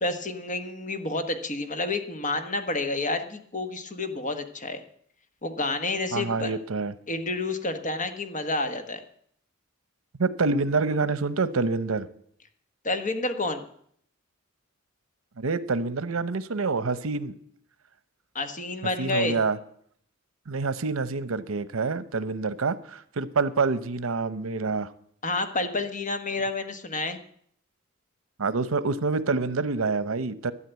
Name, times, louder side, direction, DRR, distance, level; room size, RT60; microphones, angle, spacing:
voice 1, 0.0-4.8 5.4-6.5 7.1-9.0 12.8-13.6 18.3-19.4 25.2-27.2, left 2 dB, 40° left, 7 dB, 1.4 m, -29 dB
voice 2, 6.1-6.9 10.2-12.1 15.4-17.3 19.0-19.6 20.5-24.9 28.4-30.5, right 4 dB, 85° right, 14 dB, 0.8 m, -27 dB
12.5 x 9.6 x 8.1 m, 0.65 s
head